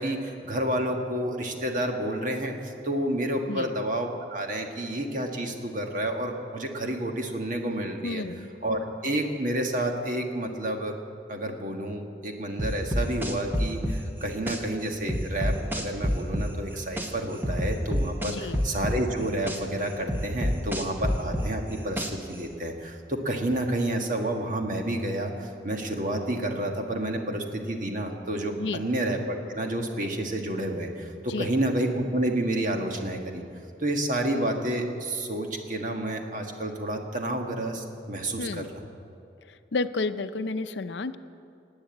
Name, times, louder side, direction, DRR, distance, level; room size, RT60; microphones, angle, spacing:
voice 1, 0.0-8.2 8.6-11.0 11.3-33.4 33.8-38.8, right 1 dB, 45° right, 3 dB, 1.6 m, -30 dB
voice 2, 8.0-8.5 18.3-18.6 28.6-28.9 31.3-31.5 38.4-38.7 39.5-41.2, left 3 dB, 80° left, 11 dB, 0.6 m, -31 dB
sound 1, 12.6-14.6 15.1-17.1 17.4-19.6 20.1-22.3, equal, 10° right, 1.1 m, -27 dB
18.5 x 8.9 x 8.7 m, 2.5 s
head